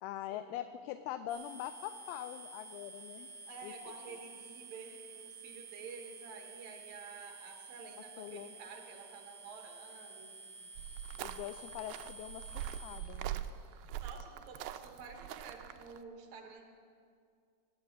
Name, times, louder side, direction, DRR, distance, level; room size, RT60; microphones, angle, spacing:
voice 1, 0.0-3.3 3.6-3.7 8.2-8.6 10.2-10.4 11.2-13.4, left 12 dB, 80° left, 10 dB, 2.4 m, -43 dB
sound 1, 1.3-13.0, right 3 dB, 45° right, 3.6 m, -51 dB
voice 2, 3.5-10.3 13.9-16.6, right 5 dB, 60° right, 3 dB, 2.2 m, -50 dB
sound 2, 10.8-16.0, right 12 dB, 85° right, 2.1 m, -43 dB
20.0 x 8.3 x 8.2 m, 2.2 s
omnidirectional pair, 4.7 m